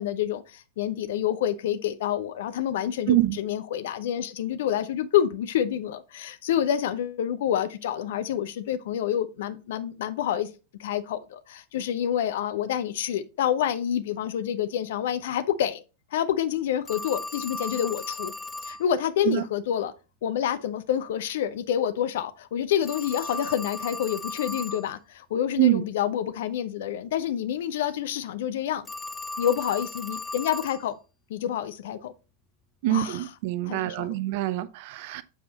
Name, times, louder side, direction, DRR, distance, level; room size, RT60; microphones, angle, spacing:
voice 1, 0.0-10.5 10.8-15.8 16.1-18.3 18.6-19.9 20.2-28.9 29.4-30.9 31.3-32.1 32.9-33.2 33.7-34.1, left 10 dB, 55° left, 0.7 m, -28 dB
voice 2, 3.1-3.4 19.2-19.4 25.6-25.8 32.8-35.2, right 15 dB, 50° right, 0.5 m, -25 dB
Telephone, 16.9-18.8 22.8-24.9 28.8-30.8, left 2 dB, 10° left, 0.4 m, -36 dB
7.2 x 4.8 x 3.9 m
figure-of-eight pair, 90°, 0 cm